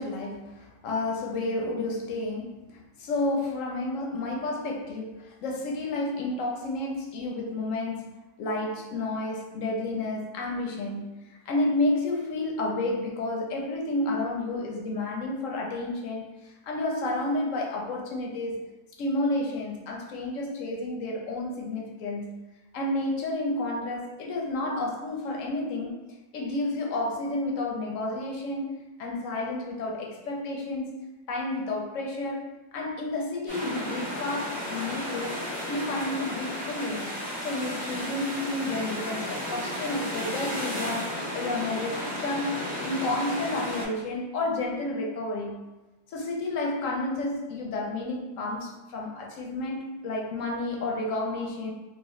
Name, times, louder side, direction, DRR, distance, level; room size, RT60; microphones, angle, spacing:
voice 1, 0.0-8.1 8.4-18.6 19.0-22.4 22.7-26.0 26.3-28.7 29.0-30.9 31.3-32.4 32.7-35.4 35.7-37.1 37.4-45.6 46.1-51.7, left 2 dB, 65° left, -1 dB, 0.8 m, -31 dB
sound 1, 33.5-43.8, left 1 dB, 10° right, 0.5 m, -33 dB
2.8 x 2.8 x 3.0 m, 1.1 s
omnidirectional pair, 1.6 m